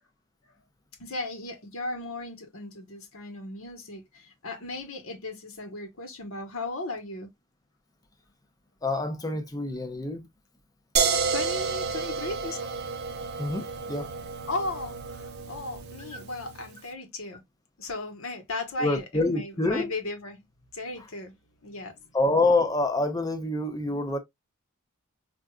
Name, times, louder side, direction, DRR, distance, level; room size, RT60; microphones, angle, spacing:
voice 1, 1.0-7.3 11.3-12.7 14.5-17.4 17.8-20.4 20.7-21.4 21.6-22.1, left 2 dB, 70° left, 1.1 m, -36 dB
voice 2, 8.8-10.3 13.4-14.1 16.1-16.2 18.8-19.9 22.1-24.2, left 2 dB, 15° left, 0.6 m, -26 dB
sound 1, 11.0-16.8, right 5 dB, 50° right, 0.6 m, -31 dB
4.5 x 2.5 x 2.3 m
head